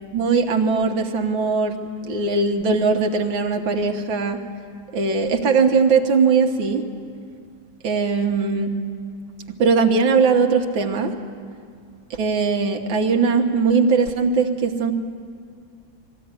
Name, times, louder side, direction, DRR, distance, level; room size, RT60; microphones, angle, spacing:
voice 1, 0.1-1.8 2.0-4.4 4.9-6.8 7.8-8.7 9.6-11.1 12.1-14.9, right 4 dB, 85° right, 3 dB, 2.1 m, -20 dB
21.5 x 15.5 x 9.7 m, 2.3 s
omnidirectional pair, 2.1 m